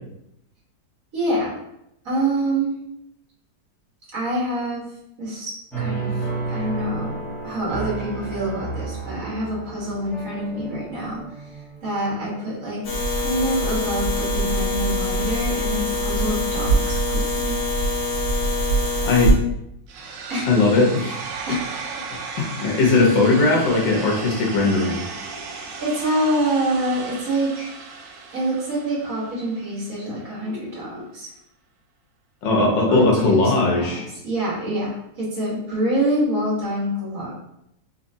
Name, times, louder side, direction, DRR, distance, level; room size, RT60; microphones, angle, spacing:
voice 1, 1.1-1.5 2.0-2.8 4.1-4.8 5.2-7.1 7.4-11.2 11.8-12.8 13.2-17.6 20.3-20.5 21.5-21.8 25.8-27.7 28.3-31.3 32.9-37.3, right 1 dB, 50° right, -6 dB, 1.7 m, -26 dB
sound 1, 5.7-12.9 13.4-14.0, right 4 dB, ahead, 0.9 m, -32 dB
sound 2, 12.8-19.3, equal, 60° left, 1.5 m, -23 dB
sound 3, 19.9-29.9, right 4 dB, 80° right, 0.7 m, -35 dB
voice 2, 20.5-21.2 22.4-25.0 32.4-34.0, left 3 dB, 75° left, -1 dB, 1.5 m, -18 dB
4.0 x 2.9 x 2.7 m, 0.81 s
omnidirectional pair, 2.0 m